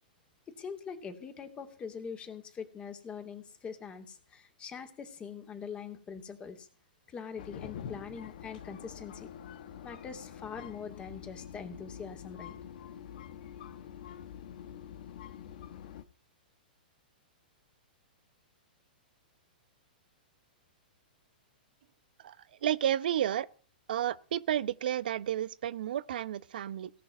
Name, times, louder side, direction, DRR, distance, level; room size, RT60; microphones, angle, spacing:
voice 1, 0.5-6.7 7.1-9.3 9.8-12.6, left 6 dB, 20° left, 2.8 m, -43 dB
sound 1, 7.4-16.0, left 9 dB, 60° left, 1.3 m, -46 dB
voice 2, 22.6-23.5 23.9-26.9, right 11 dB, 70° right, 0.9 m, -31 dB
18.0 x 6.4 x 9.4 m
hypercardioid pair, 120°, 5 cm